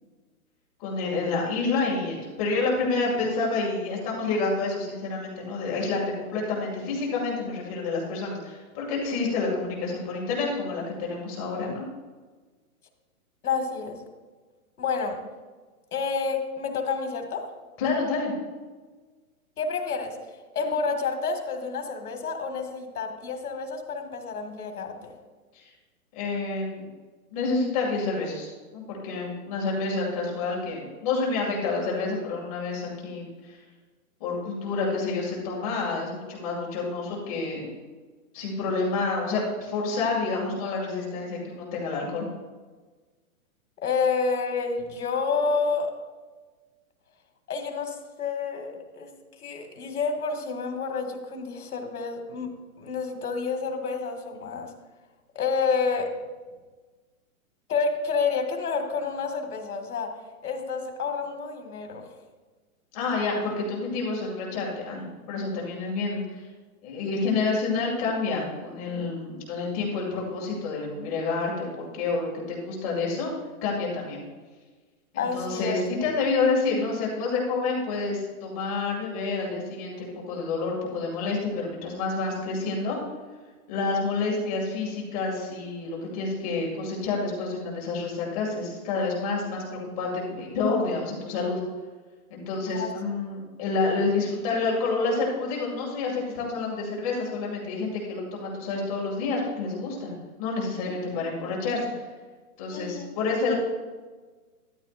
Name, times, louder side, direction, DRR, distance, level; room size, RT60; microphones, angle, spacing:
voice 1, 0.8-11.8 17.8-18.3 25.5-25.6 26.1-26.8 27.3-33.6 34.2-37.7 38.3-42.3 62.9-66.4 66.8-73.3 73.6-74.2 75.1-83.0 83.7-91.6 92.3-100.1 100.4-101.9 102.6-103.5, left 3 dB, 25° left, -2 dB, 2.2 m, -28 dB
voice 2, 13.4-14.0 14.8-15.2 15.9-17.5 19.6-20.2 20.5-25.1 43.8-45.9 47.5-49.1 49.4-54.7 55.4-56.1 57.7-60.2 60.4-62.1 75.2-75.8 92.7-92.9 101.1-101.2 102.7-103.1, left 5 dB, 85° left, 4 dB, 2.0 m, -29 dB
13.0 x 11.0 x 2.5 m, 1.3 s
hypercardioid pair, 170°, 44 cm